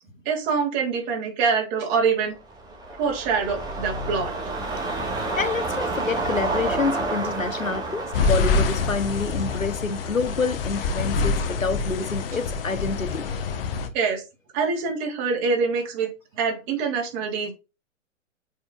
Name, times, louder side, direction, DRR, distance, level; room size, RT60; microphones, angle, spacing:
voice 1, 0.2-2.4 3.0-4.3 13.9-14.2 14.5-17.5, right 5 dB, 35° right, 3.2 m, -25 dB
sound 1, 2.4-10.8 11.2-11.3, right 2 dB, 10° right, 2.1 m, -30 dB
voice 2, 5.4-13.3, left 4 dB, 85° left, 1.2 m, -27 dB
sound 2, 8.1-13.9, left 4 dB, 45° left, 1.3 m, -26 dB
8.8 x 5.5 x 2.5 m
figure-of-eight pair, 115°, 38 cm